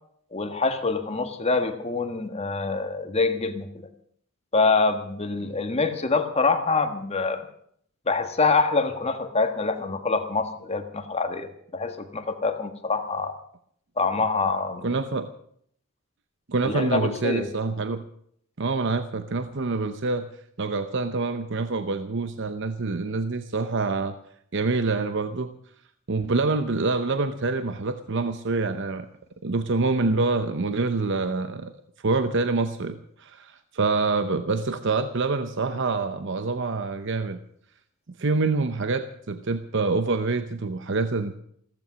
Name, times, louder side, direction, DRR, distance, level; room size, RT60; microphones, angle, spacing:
voice 1, 0.3-3.9 4.5-7.4 8.1-13.3 14.0-14.9 16.6-17.5, left 4 dB, 30° left, 7 dB, 1.6 m, -25 dB
voice 2, 14.8-15.3 16.5-18.0 18.6-20.3 20.6-24.1 24.5-25.5 26.1-29.1 29.4-31.7 32.0-37.4 38.2-41.3, right 3 dB, 60° right, 10 dB, 0.8 m, -26 dB
15.5 x 14.0 x 6.3 m, 0.66 s
head